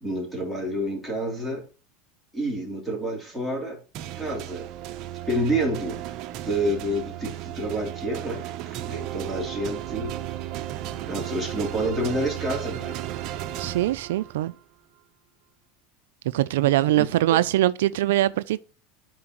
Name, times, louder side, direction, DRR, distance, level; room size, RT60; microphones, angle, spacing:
voice 1, 0.0-1.6 2.3-3.8 4.2-4.7 5.3-6.0 6.4-10.2 11.1-13.0 16.9-17.4, right 1 dB, 5° left, 2.9 m, -29 dB
sound 1, 3.9-14.5, right 13 dB, 50° right, 0.7 m, -34 dB
voice 2, 13.6-14.5 16.3-18.6, right 15 dB, 85° right, 0.3 m, -22 dB
11.5 x 4.4 x 3.0 m
supercardioid pair, 130°, 0 cm